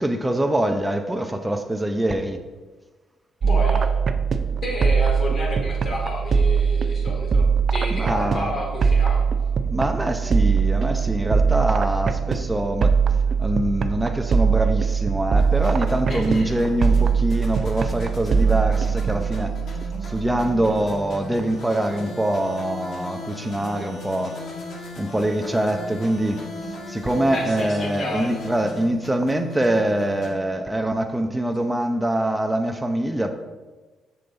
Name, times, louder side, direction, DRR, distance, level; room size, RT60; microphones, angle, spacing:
voice 1, 0.0-2.4 7.9-8.5 9.6-13.0 13.4-19.5 20.0-24.4 25.0-26.4 26.9-33.3, right 1 dB, 10° right, 4 dB, 0.6 m, -24 dB
voice 2, 3.4-3.9 4.6-9.2 16.1-16.5 27.3-28.3, left 2 dB, 50° left, -1 dB, 2.4 m, -30 dB
sound 1, 3.4-21.0, right 6 dB, 50° right, 0.5 m, -22 dB
sound 2, 15.3-30.3, left 2 dB, 65° left, 1.7 m, -37 dB
7.1 x 6.6 x 4.0 m, 1.3 s
cardioid pair, 90°, 0 cm